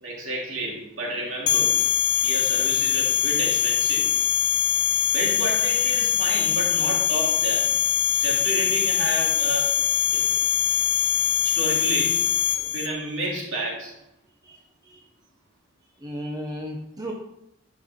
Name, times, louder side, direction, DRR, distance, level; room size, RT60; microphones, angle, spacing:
voice 1, 0.0-1.7 2.2-4.1 5.1-7.7 8.1-9.8 10.1-10.2 11.5-12.3 12.6-13.9, right 1 dB, 65° right, -3 dB, 2.7 m, -31 dB
sound 1, 1.5-12.9, left 10 dB, 55° left, 0.7 m, -22 dB
voice 2, 14.4-15.0 16.0-17.1, equal, 20° right, 0 dB, 0.8 m, -35 dB
11.0 x 5.4 x 3.6 m, 0.83 s
head